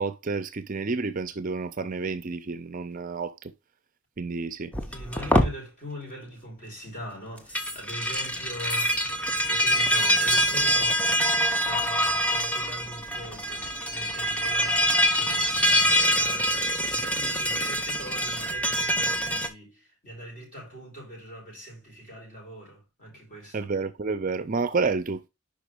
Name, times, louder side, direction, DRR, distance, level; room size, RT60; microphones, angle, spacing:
voice 1, 0.0-3.5 4.2-4.7 23.5-25.2, right 4 dB, 40° right, 0.5 m, -29 dB
sound 1, 4.7-5.5 7.4-19.5, equal, 5° left, 0.7 m, -25 dB
voice 2, 4.9-23.7, equal, 40° left, 5.1 m, -42 dB
5.3 x 5.1 x 4.9 m
head